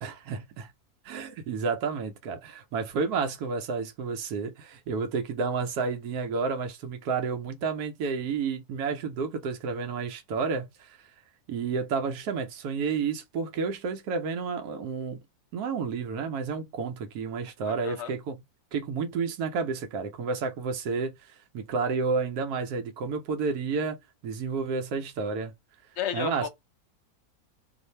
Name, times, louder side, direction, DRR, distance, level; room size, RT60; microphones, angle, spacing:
voice 1, 0.0-0.7 1.0-11.1 11.5-15.2 15.5-18.4 18.7-24.0 24.2-25.5 26.1-26.5, right 5 dB, 85° right, 1.1 m, -31 dB
voice 2, 17.6-18.1 26.0-26.5, left 8 dB, 55° left, 0.9 m, -33 dB
2.5 x 2.4 x 4.1 m
omnidirectional pair, 1.6 m